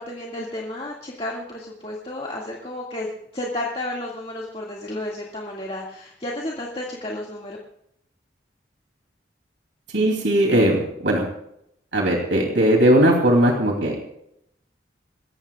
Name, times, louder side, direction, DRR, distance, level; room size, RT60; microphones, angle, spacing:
voice 1, 0.0-7.6, left 1 dB, 30° left, -2 dB, 2.1 m, -32 dB
voice 2, 9.9-11.2 11.9-13.9, right 1 dB, 80° right, 0 dB, 2.9 m, -18 dB
28.5 x 15.5 x 2.4 m, 0.76 s
head